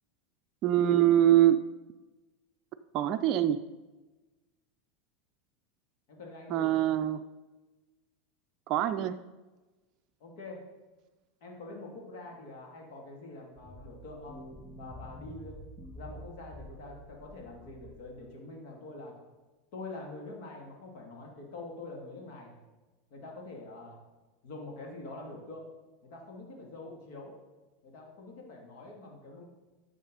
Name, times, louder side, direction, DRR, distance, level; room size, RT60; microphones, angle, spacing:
voice 1, 0.6-1.6 2.9-3.6 6.5-7.2 8.7-9.2, right 12 dB, 45° right, 7 dB, 0.4 m, -24 dB
voice 2, 6.1-6.8 10.2-10.6 11.4-14.4 14.8-15.6 15.9-19.1 19.7-22.6 23.1-24.0 24.4-25.7 26.0-27.3 27.8-29.4, left 2 dB, 60° left, 0 dB, 2.5 m, -45 dB
sound 1, 13.6-18.2, right 1 dB, ahead, 2.3 m, -48 dB
10.5 x 6.7 x 4.0 m, 1.2 s
hypercardioid pair, 85°, 0 cm